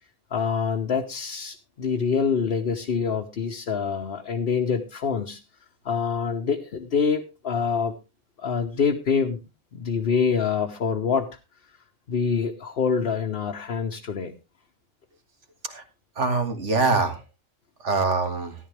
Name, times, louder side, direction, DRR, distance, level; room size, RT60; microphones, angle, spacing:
voice 1, 0.3-5.4 5.8-8.0 8.4-9.4 9.7-11.3 12.1-14.3, left 6 dB, 55° left, 2 dB, 1.0 m, -25 dB
voice 2, 16.2-17.2 17.8-18.6, right 3 dB, 65° right, 6 dB, 2.0 m, -24 dB
13.5 x 11.5 x 3.3 m, 0.27 s
omnidirectional pair, 1.3 m